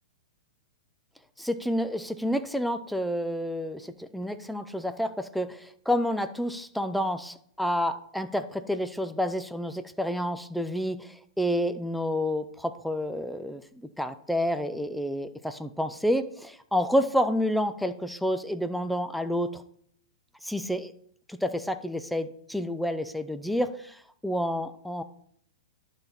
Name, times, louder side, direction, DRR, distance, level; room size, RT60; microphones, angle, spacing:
voice 1, 1.4-13.6 14.0-19.6 20.4-20.9 21.3-25.0, equal, ahead, 10 dB, 0.5 m, -29 dB
11.5 x 4.0 x 4.3 m, 0.65 s
hypercardioid pair, 120°, 3 cm